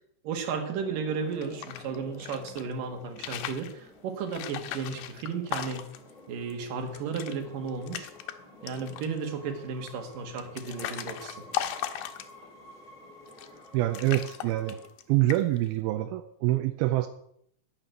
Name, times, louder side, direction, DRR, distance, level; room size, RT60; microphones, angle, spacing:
voice 1, 0.2-5.8 6.3-8.1 8.6-11.4, right 5 dB, 60° right, 5 dB, 3.2 m, -34 dB
sound 1, 0.6-14.9, left 1 dB, 10° left, 2.5 m, -51 dB
sound 2, 1.3-2.6 3.1-3.7 4.3-6.1 6.5-6.6 6.8-7.4 7.7-8.4 8.7-9.2 9.9-12.6 13.3-13.7 13.9-15.0 15.3-15.7, left 11 dB, 75° left, 2.1 m, -37 dB
voice 2, 13.7-14.8 15.1-17.1, right 16 dB, 80° right, 8 dB, 2.4 m, -26 dB
11.0 x 6.9 x 9.1 m, 0.69 s
omnidirectional pair, 4.8 m